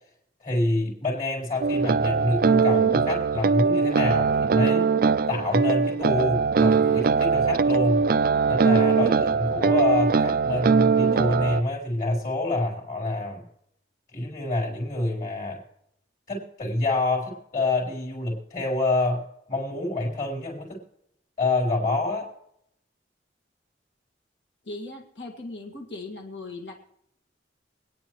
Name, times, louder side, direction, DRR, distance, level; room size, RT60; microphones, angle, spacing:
voice 1, 0.4-4.8 5.3-8.0 8.5-13.4 14.1-15.6 16.3-19.2 19.5-20.8 21.4-22.3, left 2 dB, 45° left, -2 dB, 4.0 m, -27 dB
sound 1, 1.6-11.6, right 5 dB, 50° right, 0.4 m, -21 dB
voice 2, 24.6-26.8, left 2 dB, 70° left, 1 dB, 1.9 m, -38 dB
25.5 x 9.4 x 3.1 m, 0.75 s
head